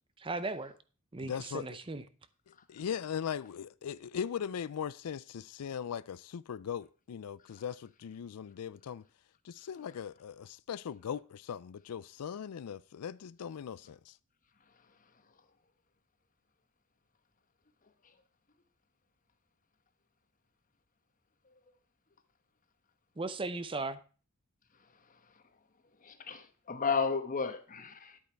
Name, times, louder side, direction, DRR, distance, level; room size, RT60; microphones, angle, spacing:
voice 1, 0.2-0.7 1.1-2.0 23.2-24.0, right 3 dB, 25° right, 0.6 m, -37 dB
voice 2, 1.2-1.8 2.5-9.0 9.4-14.2, left 8 dB, 90° left, 0.4 m, -39 dB
voice 3, 26.0-28.2, left 5 dB, 35° left, 1.1 m, -33 dB
10.5 x 8.5 x 4.5 m
head